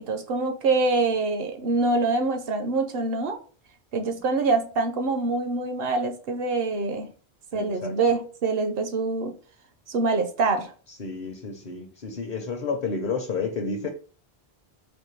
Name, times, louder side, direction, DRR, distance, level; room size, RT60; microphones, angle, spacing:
voice 1, 0.0-3.4 3.9-7.1 7.5-9.3 9.9-10.7, right 3 dB, 65° right, 6 dB, 0.8 m, -25 dB
voice 2, 7.5-8.2 10.9-13.9, left 4 dB, 50° left, 3 dB, 0.7 m, -31 dB
4.3 x 2.6 x 3.1 m, 0.39 s
omnidirectional pair, 1.1 m